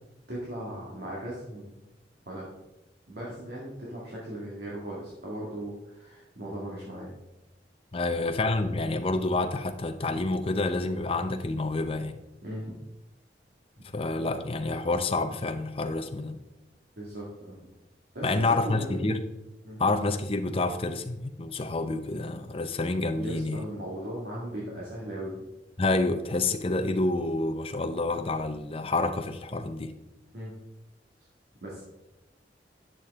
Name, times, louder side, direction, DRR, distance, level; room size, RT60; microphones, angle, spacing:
voice 1, 0.3-1.8 2.3-2.5 3.1-7.1 8.0-8.1 12.4-12.7 17.0-17.6 18.1-19.0 19.6-19.8 23.2-25.3 30.3-30.5 31.6-31.8, right 1 dB, 60° right, 2.0 m, -38 dB
voice 2, 7.9-12.2 13.9-16.4 18.2-19.2 19.8-23.6 25.8-29.9, left 2 dB, 30° left, 0.6 m, -28 dB
10.0 x 6.7 x 3.6 m
head